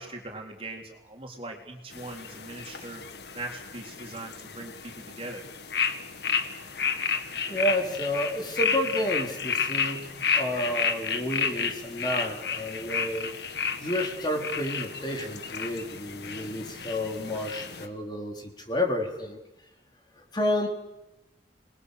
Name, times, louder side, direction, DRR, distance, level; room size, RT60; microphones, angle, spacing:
voice 1, 0.0-3.0 3.3-5.4, right 2 dB, 30° right, 1 dB, 3.8 m, -40 dB
sound 1, 1.9-17.9, left 6 dB, 70° left, 1.8 m, -32 dB
voice 2, 7.5-13.3 13.8-19.4 20.3-20.7, left 1 dB, 25° left, 1 dB, 4.0 m, -30 dB
28.5 x 21.0 x 6.7 m, 0.92 s
head